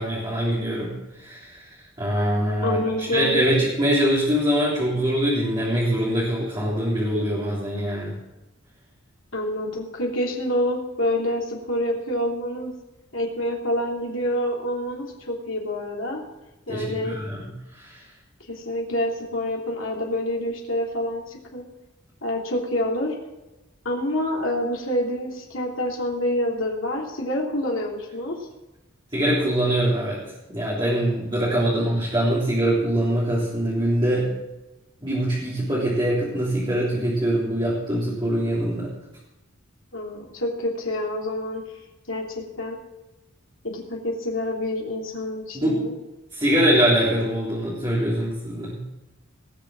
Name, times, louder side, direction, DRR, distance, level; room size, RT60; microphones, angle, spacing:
voice 1, 0.0-1.6 2.0-2.8 3.1-8.2 16.7-17.4 17.7-18.1 29.1-30.2 30.5-34.3 35.0-38.9 45.5-45.8 46.3-48.8, right 1 dB, 20° right, -7 dB, 3.6 m, -23 dB
voice 2, 2.6-3.4 9.3-12.7 13.1-16.2 16.7-17.1 18.5-21.6 22.2-23.1 23.8-28.4 31.4-31.9 39.9-41.6 42.1-42.8 43.6-45.9, left 1 dB, 70° left, -1 dB, 3.0 m, -27 dB
19.0 x 6.8 x 7.5 m, 1.0 s
head